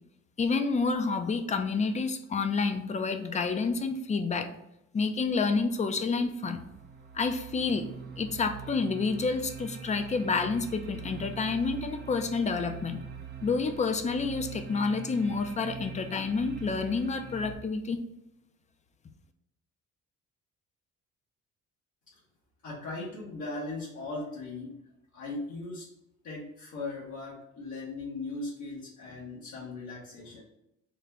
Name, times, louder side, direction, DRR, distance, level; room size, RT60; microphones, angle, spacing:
voice 1, 0.4-4.5 4.9-6.6 7.1-7.9 8.2-13.0 13.4-18.0, left 4 dB, 25° left, 7 dB, 0.4 m, -29 dB
sound 1, 6.2-17.5, right 7 dB, 35° right, 0.4 m, -43 dB
voice 2, 22.6-24.7 25.1-25.9 26.2-30.4, left 2 dB, 75° left, -5 dB, 1.0 m, -38 dB
3.8 x 2.1 x 3.4 m, 0.84 s
cardioid pair, 90°, 30 cm